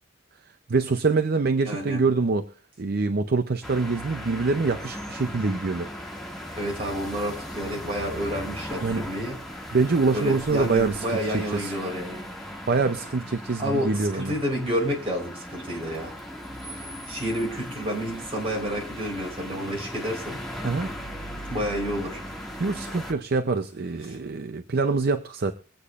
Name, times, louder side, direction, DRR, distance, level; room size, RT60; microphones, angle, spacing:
voice 1, 0.7-2.5 2.8-5.9 8.8-9.0 9.7-11.7 12.7-14.3 20.6-20.9 22.6-25.5, right 4 dB, 50° right, 8 dB, 0.5 m, -25 dB
voice 2, 1.7-2.0 6.6-9.4 10.1-12.2 13.6-16.1 16.6-20.4 21.4-22.2 24.1-24.2, equal, 30° right, -1 dB, 3.9 m, -30 dB
sound 1, 3.6-23.1, equal, ahead, 2.0 m, -38 dB
24.0 x 8.3 x 2.4 m, 0.39 s
head